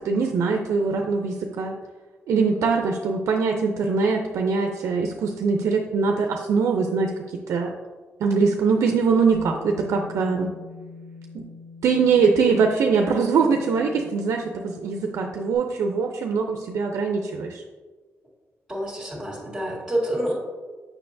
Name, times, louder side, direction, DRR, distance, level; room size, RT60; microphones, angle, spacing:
voice 1, 0.0-1.8 2.3-7.7 8.2-10.5 11.8-17.6, right 5 dB, 85° right, 3 dB, 0.5 m, -22 dB
Bass guitar, 9.3-15.6, left 4 dB, 70° left, 1.8 m, -43 dB
voice 2, 18.7-20.3, right 1 dB, 5° right, -8 dB, 1.7 m, -27 dB
6.8 x 5.7 x 2.6 m, 1.3 s
cardioid pair, 85°, 5 cm